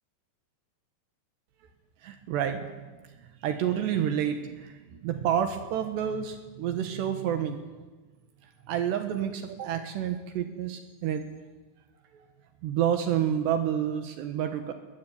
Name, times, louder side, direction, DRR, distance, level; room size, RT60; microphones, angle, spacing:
voice 1, 2.0-2.7 3.2-7.6 8.7-11.3 12.1-12.3 12.6-14.7, right 9 dB, 75° right, 8 dB, 3.4 m, -29 dB
22.0 x 20.5 x 9.5 m, 1.3 s
omnidirectional pair, 5.2 m